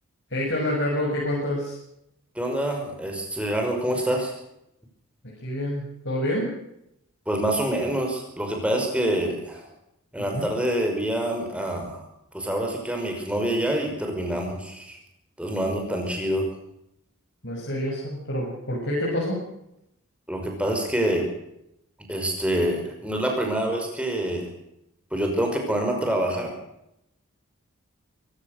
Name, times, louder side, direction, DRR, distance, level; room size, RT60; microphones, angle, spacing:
voice 1, 0.3-1.8 5.4-6.5 10.2-10.5 17.4-19.4, left 1 dB, 55° left, -4 dB, 7.0 m, -27 dB
voice 2, 2.4-4.3 7.3-9.6 10.1-12.0 12.3-15.0 15.4-16.5 20.3-21.3 22.1-24.5 25.1-26.5, right 1 dB, 5° right, 2 dB, 5.4 m, -26 dB
24.0 x 16.5 x 6.6 m, 0.81 s
head